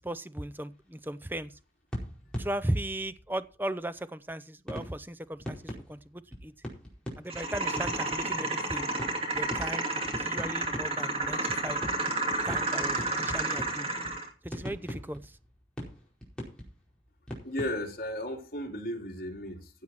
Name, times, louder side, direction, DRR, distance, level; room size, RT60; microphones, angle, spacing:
voice 1, 0.0-1.5 2.4-6.5 7.2-8.9 9.3-11.9 12.4-13.9 14.4-15.4, right 1 dB, 10° right, 14 dB, 0.6 m, -37 dB
sound 1, 0.7-0.8 1.9-3.5 4.7-18.1, equal, 5° left, 4.6 m, -42 dB
sound 2, 7.3-14.3, right 2 dB, 35° right, 2.5 m, -31 dB
voice 2, 17.4-19.8, left 1 dB, 55° left, 0 dB, 3.6 m, -35 dB
16.0 x 7.9 x 4.4 m, 0.35 s
head